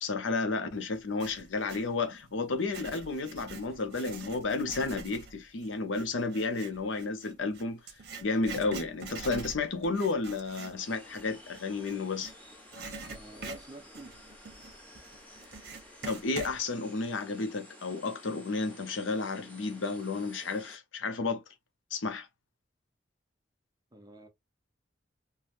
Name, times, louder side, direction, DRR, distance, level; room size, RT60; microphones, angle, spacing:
voice 1, 0.0-7.8 8.2-12.3 16.1-21.4 21.9-22.3, left 3 dB, 85° left, 0.7 m, -32 dB
Writing, 0.9-1.9 2.5-12.3 12.7-16.6, right 4 dB, 55° right, 0.8 m, -45 dB
sound 1, 10.8-20.8, left 1 dB, 10° left, 1.0 m, -53 dB
voice 2, 13.1-14.2 23.9-24.3, right 1 dB, 20° right, 0.7 m, -48 dB
3.3 x 2.2 x 2.5 m
head